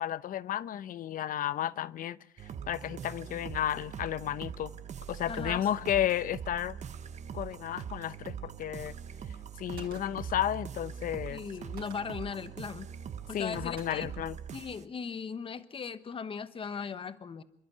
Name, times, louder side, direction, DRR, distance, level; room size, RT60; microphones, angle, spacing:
voice 1, 0.0-4.7 5.1-6.8 7.3-8.9 9.6-11.4 13.3-14.4, left 11 dB, 55° left, 18 dB, 0.8 m, -33 dB
sound 1, 2.4-14.8, right 8 dB, 45° right, 1.1 m, -42 dB
voice 2, 5.3-5.7 11.3-12.9 13.3-14.1 14.5-17.4, left 6 dB, 30° left, 13 dB, 1.1 m, -38 dB
Gunshot gunfire, 9.8-10.4 11.8-12.3 13.8-14.3, right 7 dB, 65° right, 4.5 m, -50 dB
28.0 x 11.5 x 9.5 m, 0.79 s
cardioid pair, 110°, 17 cm